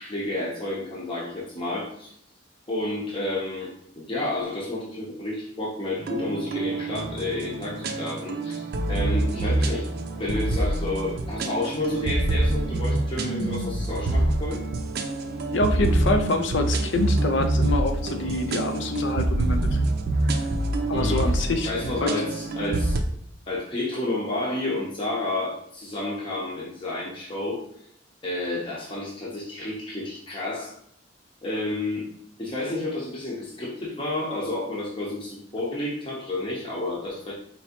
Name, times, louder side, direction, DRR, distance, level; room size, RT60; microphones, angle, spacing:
voice 1, 0.0-2.1 2.7-9.9 10.1-14.6 20.9-21.2 21.6-23.0 23.5-27.6 28.2-30.7 31.4-32.0 32.4-37.3, left 2 dB, 30° left, -6 dB, 0.8 m, -30 dB
sound 1, 6.0-23.0, right 2 dB, 55° right, 0.4 m, -26 dB
voice 2, 15.5-19.8 20.9-21.7 22.0-22.1, left 2 dB, 75° left, 7 dB, 0.5 m, -26 dB
4.5 x 3.0 x 2.9 m, 0.70 s
head